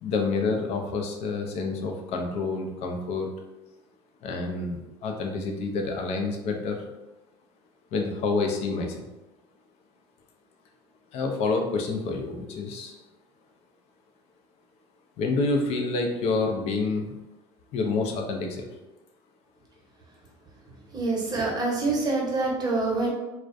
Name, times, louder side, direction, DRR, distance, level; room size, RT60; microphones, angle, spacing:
voice 1, 0.0-3.3 4.2-6.9 7.9-9.1 11.1-13.0 15.2-17.2 17.7-18.7, left 3 dB, 50° left, 3 dB, 0.5 m, -28 dB
voice 2, 20.9-23.1, right 3 dB, 30° right, -2 dB, 0.8 m, -26 dB
2.3 x 2.1 x 2.5 m, 1.0 s
hypercardioid pair, 85°, 14 cm